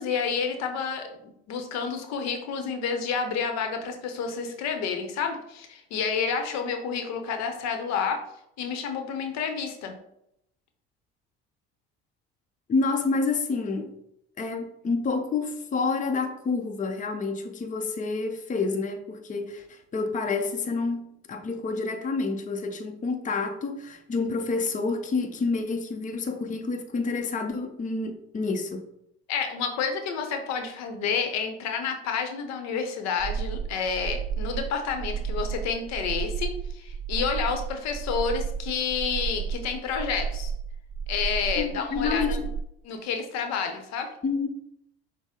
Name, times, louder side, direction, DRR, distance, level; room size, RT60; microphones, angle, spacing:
voice 1, 0.0-8.2 8.6-9.9 29.3-40.5 41.1-42.4 42.8-44.1, left 6 dB, 65° left, 0.8 m, -29 dB
voice 2, 12.7-13.9 14.4-28.9 41.6-42.5 44.2-44.5, left 4 dB, 25° left, 0.7 m, -28 dB
sound 1, 33.2-42.6, right 6 dB, 30° right, 0.4 m, -32 dB
6.1 x 2.1 x 3.7 m
hypercardioid pair, 70°, 29 cm